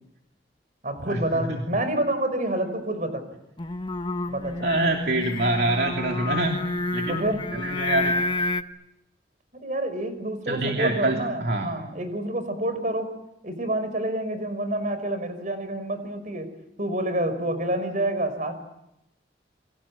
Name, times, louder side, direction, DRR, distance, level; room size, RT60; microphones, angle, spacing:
voice 1, 0.8-3.2 4.3-4.6 7.1-7.5 9.6-13.1 13.4-16.5 16.8-18.6, right 1 dB, 45° right, 10 dB, 5.3 m, -28 dB
Singing, 3.6-8.6, left 2 dB, 25° left, 1.0 m, -29 dB
voice 2, 4.6-6.7 6.9-7.2 7.5-8.2 10.5-11.7, right 2 dB, 60° right, 1 dB, 2.9 m, -25 dB
28.5 x 24.0 x 8.6 m, 0.85 s
head